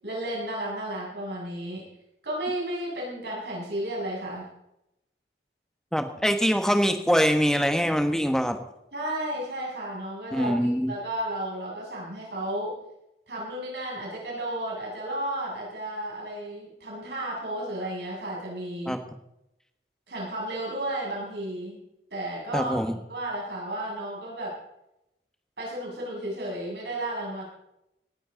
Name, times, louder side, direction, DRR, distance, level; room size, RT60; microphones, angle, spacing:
voice 1, 0.0-1.8 2.2-4.5 8.9-12.7 13.3-19.0 20.1-21.8 22.1-24.6 25.6-27.4, right 1 dB, 75° right, -4 dB, 6.7 m, -33 dB
voice 2, 5.9-8.6 10.3-10.9 18.8-19.0 22.5-22.9, equal, 5° left, 6 dB, 1.3 m, -23 dB
18.5 x 13.0 x 3.9 m, 0.84 s
head